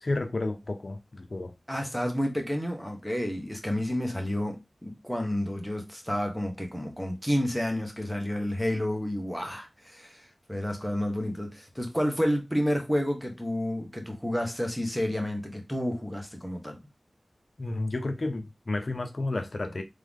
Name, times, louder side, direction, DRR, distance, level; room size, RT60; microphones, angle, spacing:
voice 1, 0.0-1.5 17.6-19.8, left 2 dB, 55° left, 0.7 m, -31 dB
voice 2, 1.7-16.8, equal, ahead, 1.3 m, -30 dB
3.7 x 3.4 x 3.6 m
wide cardioid pair, 65°, 0 cm